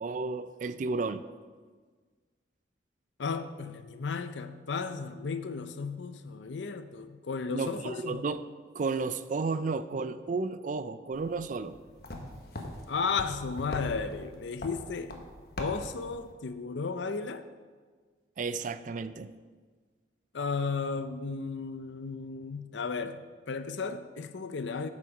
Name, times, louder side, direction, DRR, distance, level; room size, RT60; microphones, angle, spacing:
voice 1, 0.0-1.2 7.5-8.4 8.7-11.8 18.4-19.3, right 4 dB, 45° right, 13 dB, 0.4 m, -32 dB
voice 2, 3.2-8.2 12.9-15.1 15.6-17.5 20.3-24.9, left 5 dB, 75° left, 11 dB, 0.6 m, -34 dB
sound 1, 11.1-16.3, left 1 dB, 55° left, 1.2 m, -42 dB
8.4 x 7.3 x 5.3 m, 1.5 s
head